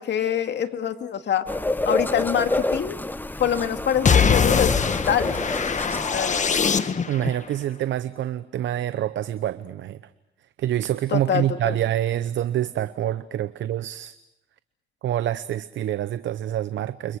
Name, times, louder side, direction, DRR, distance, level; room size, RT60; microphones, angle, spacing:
voice 1, 0.0-1.4 1.9-3.0 3.4-5.5 5.9-6.5 11.1-11.8, left 9 dB, 60° left, 7 dB, 2.3 m, -25 dB
sound 1, 1.5-6.8, left 2 dB, 10° left, 1.0 m, -28 dB
sound 2, 4.0-7.3, left 6 dB, 35° left, 1.5 m, -22 dB
voice 2, 7.1-10.0 10.6-14.1 15.0-17.2, right 12 dB, 70° right, 14 dB, 0.9 m, -26 dB
29.5 x 25.5 x 6.4 m, 0.86 s
cardioid pair, 90°, 20 cm